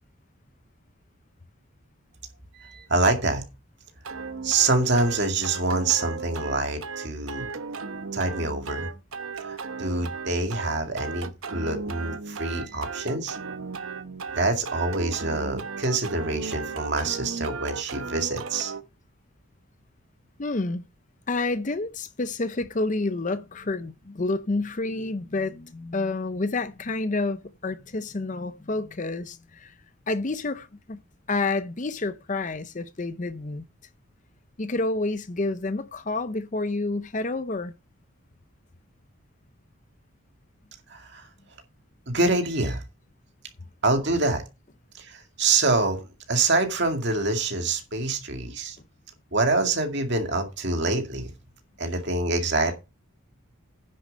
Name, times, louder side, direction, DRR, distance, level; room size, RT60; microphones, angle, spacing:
voice 1, 2.5-3.4 4.4-7.5 8.1-8.9 9.4-13.4 14.3-18.7 40.9-41.3 42.1-42.8 43.8-44.4 45.0-46.0 46.3-48.8 49.3-51.3 51.8-52.7, right 3 dB, 50° right, 2.2 m, -26 dB
sound 1, 4.0-18.8, right 4 dB, 70° right, 1.0 m, -36 dB
voice 2, 20.4-20.8 21.3-29.7 30.1-31.0 31.3-33.7 34.6-37.7, left 2 dB, 35° left, 0.6 m, -29 dB
10.0 x 6.9 x 5.4 m
head